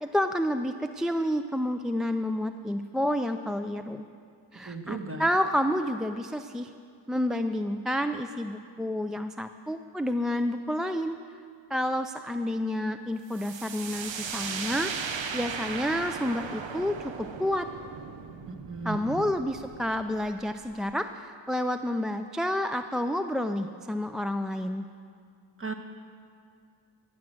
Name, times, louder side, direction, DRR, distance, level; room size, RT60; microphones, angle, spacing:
voice 1, 0.0-4.0 4.5-6.7 7.1-11.2 11.7-14.9 15.3-17.7 18.8-24.9, left 1 dB, ahead, 8 dB, 0.3 m, -29 dB
voice 2, 4.7-5.2 18.5-19.2 25.6-25.7, right 4 dB, 30° right, 5 dB, 1.3 m, -36 dB
sound 1, 13.3-20.9, right 6 dB, 85° right, 0.8 m, -37 dB
15.5 x 6.2 x 7.7 m, 2.3 s
cardioid pair, 55°, 44 cm